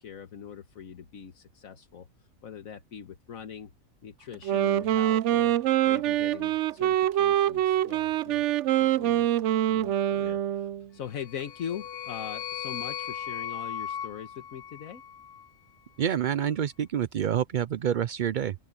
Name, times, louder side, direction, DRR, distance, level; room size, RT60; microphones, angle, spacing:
voice 1, 0.0-2.1 2.4-3.7 4.0-5.5 5.8-8.4 8.8-9.3 9.7-15.0, left 8 dB, 80° left, 1.6 m, -41 dB
Wind instrument woodwind instrument, 4.3-10.9, right 12 dB, 70° right, 0.8 m, -25 dB
sound 1, 11.1-15.5, left 9 dB, 60° left, 0.7 m, -37 dB
voice 2, 16.0-18.5, right 9 dB, 90° right, 0.4 m, -27 dB
open air
omnidirectional pair, 1.4 m